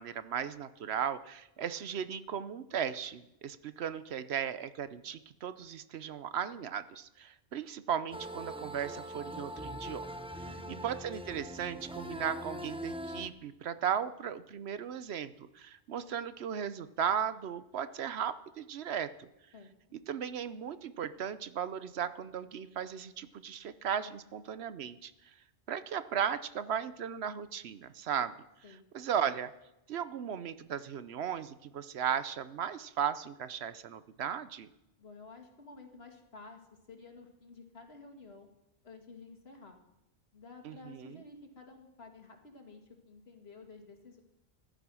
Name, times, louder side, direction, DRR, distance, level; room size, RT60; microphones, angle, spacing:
voice 1, 0.0-10.1 10.7-19.3 19.9-25.1 25.7-28.3 28.9-29.5 29.9-34.7 40.6-41.2, right 8 dB, 70° right, 13 dB, 0.9 m, -36 dB
sound 1, 8.1-13.3, equal, 5° right, 0.6 m, -42 dB
voice 2, 10.4-10.9 19.5-19.7 28.2-28.3 28.6-28.8 35.0-38.5 38.8-39.8 40.3-44.2, left 3 dB, 65° left, 3 dB, 2.3 m, -52 dB
15.5 x 11.5 x 6.2 m, 0.90 s
omnidirectional pair, 1.1 m